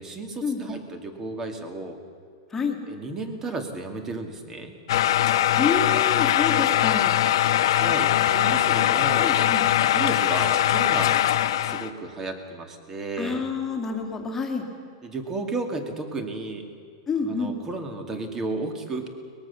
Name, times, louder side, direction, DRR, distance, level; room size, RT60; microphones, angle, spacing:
voice 1, 0.0-2.0 2.9-4.7 7.8-9.4 9.8-11.2 11.6-13.5 15.0-16.7 17.2-19.1, right 3 dB, 15° right, 6 dB, 2.2 m, -33 dB
sound 1, 4.9-11.9, left 12 dB, 65° left, 1.1 m, -21 dB
voice 2, 5.6-7.2 9.2-9.6 13.2-14.7 17.1-17.5, left 5 dB, 10° left, 3 dB, 2.3 m, -28 dB
23.0 x 21.0 x 7.0 m, 2.4 s
supercardioid pair, 160°, 3 cm